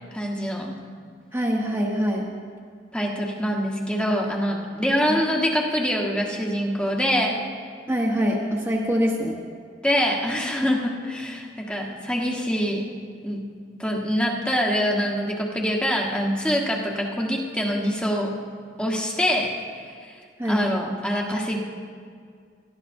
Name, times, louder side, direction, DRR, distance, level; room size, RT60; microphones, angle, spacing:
voice 1, 0.1-0.7 2.9-7.4 9.8-12.8 13.2-13.5 13.8-18.4 18.8-19.5 19.8-20.2 20.5-21.6, equal, 5° left, -1 dB, 1.3 m, -25 dB
voice 2, 1.3-2.3 5.1-5.2 7.9-9.4 20.4-20.7, equal, 10° right, -5 dB, 1.1 m, -24 dB
17.5 x 13.0 x 2.7 m, 2.1 s
head